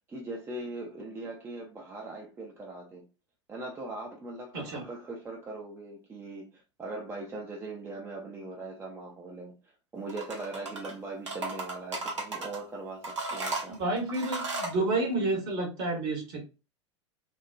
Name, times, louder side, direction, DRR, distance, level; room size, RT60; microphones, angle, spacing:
voice 1, 0.0-3.1 3.5-9.5 9.9-13.8, right 2 dB, 15° right, 0.6 m, -40 dB
sound 1, 10.1-10.9 11.3-12.6 13.0-14.8, right 2 dB, 75° right, 0.8 m, -35 dB
voice 2, 13.7-16.4, right 2 dB, 50° right, 1.4 m, -30 dB
3.1 x 2.1 x 2.5 m
figure-of-eight pair, 85°, 16 cm